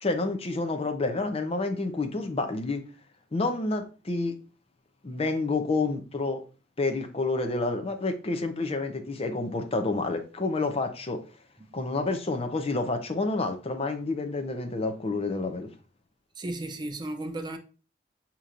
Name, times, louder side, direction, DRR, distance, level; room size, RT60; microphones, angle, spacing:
voice 1, 0.0-2.8 3.3-4.4 5.0-6.4 6.8-11.2 11.7-15.7, left 3 dB, 35° left, 0.6 m, -29 dB
voice 2, 16.4-17.6, right 1 dB, 25° right, 0.4 m, -34 dB
6.6 x 2.9 x 2.4 m
head